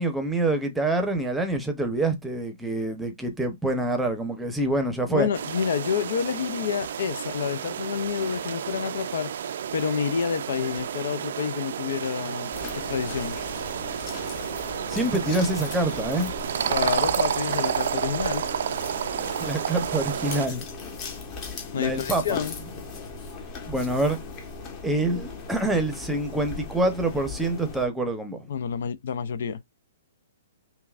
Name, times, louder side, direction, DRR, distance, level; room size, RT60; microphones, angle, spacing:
voice 1, 0.0-5.3 14.9-16.3 19.4-20.6 21.8-22.4 23.7-24.2 24.8-28.5, right 2 dB, 5° right, 0.8 m, -26 dB
voice 2, 5.1-9.3 9.7-13.4 16.7-18.4 21.7-22.5 28.5-29.6, left 7 dB, 65° left, 0.4 m, -29 dB
sound 1, 5.3-20.5, right 8 dB, 65° right, 0.4 m, -30 dB
sound 2, 12.5-27.9, left 4 dB, 30° left, 1.1 m, -38 dB
5.6 x 2.3 x 2.4 m
hypercardioid pair, 150°, 0 cm